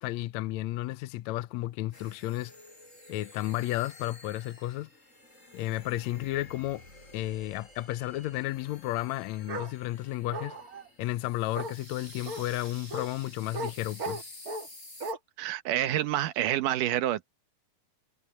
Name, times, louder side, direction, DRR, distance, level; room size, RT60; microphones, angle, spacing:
voice 1, 0.0-2.5 3.1-4.9 5.5-6.8 7.1-10.6 11.0-14.3, left 16 dB, 80° left, 1.7 m, -33 dB
sound 1, 1.9-15.1, left 1 dB, 20° left, 8.4 m, -51 dB
Bark, 9.5-9.7 10.3-10.9 11.5-11.7 12.3-12.4 12.9-13.1 13.5-13.7 14.0-14.7 15.0-15.2, right 2 dB, 40° right, 1.4 m, -36 dB
voice 2, 15.4-17.3, right 13 dB, 80° right, 2.5 m, -28 dB
omnidirectional pair, 3.7 m